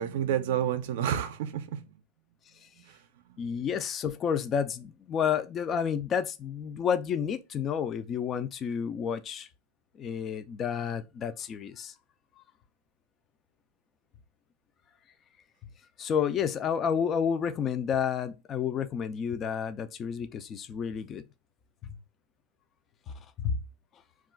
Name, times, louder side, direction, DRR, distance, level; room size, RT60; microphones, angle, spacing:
voice 1, 0.0-1.9 2.8-3.0 3.3-3.4, right 9 dB, 75° right, 0.4 m, -30 dB
voice 2, 3.4-9.5 10.0-11.9 16.0-21.2 21.8-21.9 23.4-23.6, left 7 dB, 25° left, 0.3 m, -30 dB
2.3 x 2.2 x 3.7 m
supercardioid pair, 150°, 0 cm